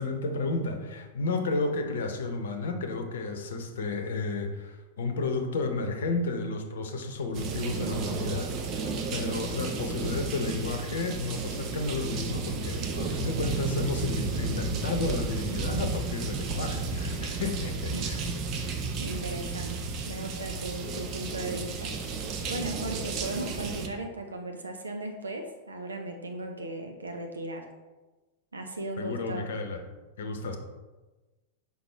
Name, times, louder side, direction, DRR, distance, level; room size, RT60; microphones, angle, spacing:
voice 1, 0.0-18.2 29.0-29.8 30.2-30.6, left 3 dB, 60° left, 6 dB, 0.8 m, -32 dB
sound 1, 7.3-23.9, right 4 dB, 40° right, 0.8 m, -33 dB
voice 2, 19.0-21.9 22.5-27.7 28.5-29.5, right 2 dB, 75° right, 3 dB, 0.6 m, -37 dB
5.9 x 5.3 x 3.3 m, 1.2 s
figure-of-eight pair, 90°, 0 cm